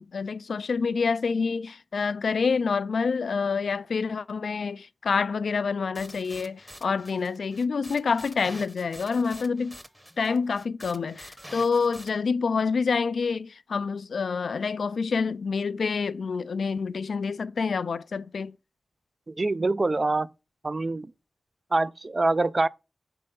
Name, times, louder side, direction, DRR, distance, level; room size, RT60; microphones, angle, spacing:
voice 1, 0.0-9.8 10.2-18.6, left 5 dB, 80° left, 0.3 m, -27 dB
sound 1, 6.0-12.1, equal, 5° right, 0.8 m, -47 dB
voice 2, 19.3-20.3 20.6-21.1 21.7-22.7, right 2 dB, 40° right, 0.3 m, -25 dB
5.5 x 3.3 x 5.2 m
cardioid pair, 65°, 0 cm